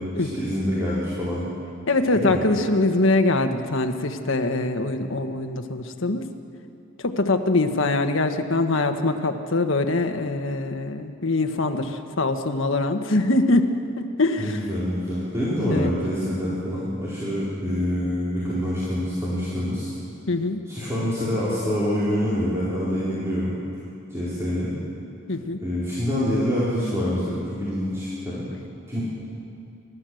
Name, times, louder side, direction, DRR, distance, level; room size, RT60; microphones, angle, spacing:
voice 1, 0.0-1.5 2.1-2.4 14.4-19.9 20.7-23.5 24.1-24.7 25.6-28.4 28.9-29.0, equal, 15° right, -10 dB, 4.5 m, -26 dB
voice 2, 1.9-6.2 7.0-14.6 15.7-15.9 20.3-20.6 25.3-25.6, left 2 dB, 70° left, 6 dB, 1.4 m, -23 dB
29.5 x 13.5 x 7.9 m, 2.7 s
head